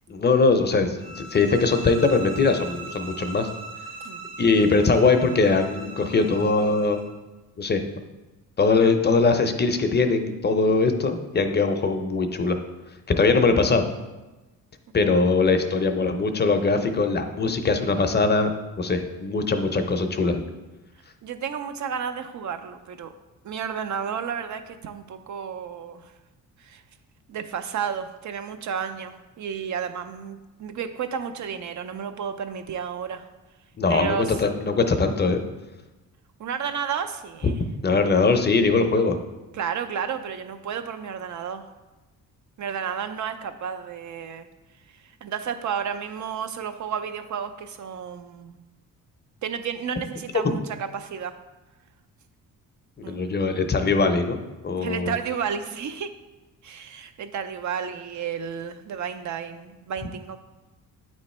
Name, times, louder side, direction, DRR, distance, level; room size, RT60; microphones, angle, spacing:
voice 1, 0.1-3.5 4.4-7.0 7.6-7.8 8.6-12.6 13.2-13.8 14.9-18.5 18.8-20.4 33.8-35.4 37.4-37.5 37.8-39.2 50.4-50.6 53.0-55.2, left 4 dB, 30° left, 6 dB, 0.6 m, -21 dB
sound 1, 1.0-7.1, right 4 dB, 90° right, 1.7 m, -39 dB
voice 2, 21.2-23.1 23.4-26.1 26.6-26.8 27.3-33.3 33.9-34.4 36.4-37.6 39.5-41.6 42.6-44.5 45.2-48.6 49.4-51.4 53.0-53.2 54.8-56.1 56.6-60.4, right 7 dB, 55° right, 9 dB, 0.6 m, -32 dB
8.8 x 3.2 x 4.2 m, 1.1 s
cardioid pair, 90°, 35 cm